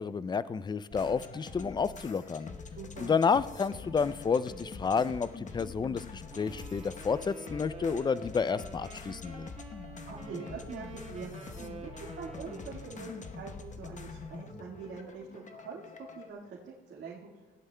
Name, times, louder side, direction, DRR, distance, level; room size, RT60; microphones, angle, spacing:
voice 1, 0.0-2.5 3.0-9.5, left 5 dB, 20° left, 16 dB, 0.4 m, -30 dB
sound 1, 0.9-16.3, left 4 dB, 40° left, 1.0 m, -45 dB
voice 2, 2.7-3.2 10.1-15.8 16.1-17.3, right 5 dB, 65° right, -4 dB, 1.8 m, -44 dB
Wind instrument woodwind instrument, 6.3-13.3, right 3 dB, 30° right, 1.8 m, -48 dB
18.0 x 11.5 x 2.2 m, 1.4 s
cardioid pair, 90°, 20 cm